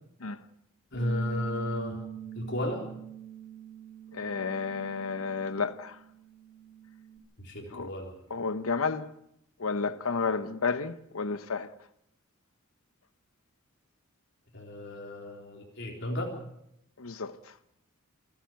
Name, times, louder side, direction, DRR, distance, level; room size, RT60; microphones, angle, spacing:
voice 1, 0.9-2.0 2.3-2.8 7.4-8.1 14.5-16.3, left 1 dB, 55° left, 3.9 m, -33 dB
Bass guitar, 0.9-7.2, right 9 dB, 35° left, 3.2 m, -44 dB
voice 2, 4.1-6.0 7.7-7.9 8.3-9.1 9.6-11.7 17.0-17.3, left 4 dB, 85° left, 1.0 m, -31 dB
28.0 x 10.0 x 9.2 m
head